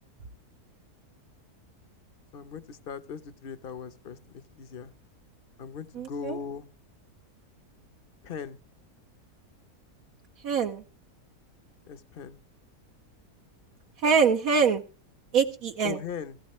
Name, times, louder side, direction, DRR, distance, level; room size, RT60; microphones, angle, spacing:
voice 1, 2.3-4.9 5.6-6.7 8.2-8.6 11.9-12.4 15.8-16.4, left 6 dB, 45° left, 0.9 m, -39 dB
voice 2, 5.9-6.4 10.4-10.8 14.0-14.8 15.3-16.0, right 6 dB, 70° right, 1.2 m, -24 dB
16.0 x 15.5 x 3.1 m
omnidirectional pair, 1.6 m